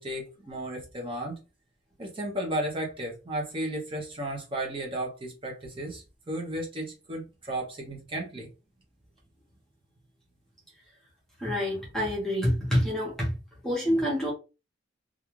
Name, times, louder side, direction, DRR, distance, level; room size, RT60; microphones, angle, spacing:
voice 1, 0.0-1.4 2.0-8.5, right 1 dB, 30° right, 0.6 m, -34 dB
voice 2, 11.4-13.3 13.6-14.3, equal, ahead, 0.8 m, -27 dB
2.4 x 2.3 x 3.0 m
head